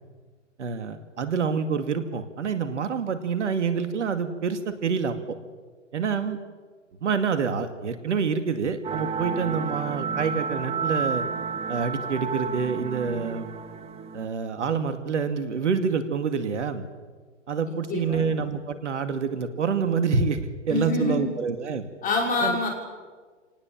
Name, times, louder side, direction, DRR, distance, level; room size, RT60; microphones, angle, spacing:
voice 1, 0.6-5.4 5.9-6.4 7.0-11.2 11.7-13.5 14.1-16.8 17.5-21.9 22.4-22.6, right 5 dB, 70° right, 8 dB, 2.3 m, -27 dB
sound 1, 8.8-14.3, right 5 dB, 15° right, 1.3 m, -31 dB
voice 2, 17.6-18.2 20.7-21.3 22.0-22.7, left 3 dB, 25° left, 1 dB, 5.6 m, -26 dB
28.5 x 18.5 x 7.4 m, 1.5 s
hypercardioid pair, 120°, 37 cm